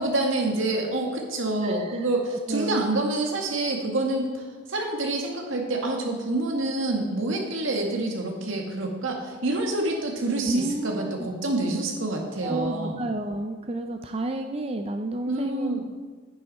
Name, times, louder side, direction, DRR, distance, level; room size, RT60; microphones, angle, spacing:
voice 1, 0.0-13.1 15.3-15.8, right 2 dB, 85° right, 1 dB, 2.0 m, -27 dB
voice 2, 1.6-2.0 2.5-2.8 10.4-11.3 12.4-15.8, right 2 dB, 30° right, 6 dB, 0.4 m, -30 dB
10.0 x 9.7 x 4.3 m, 1.4 s
head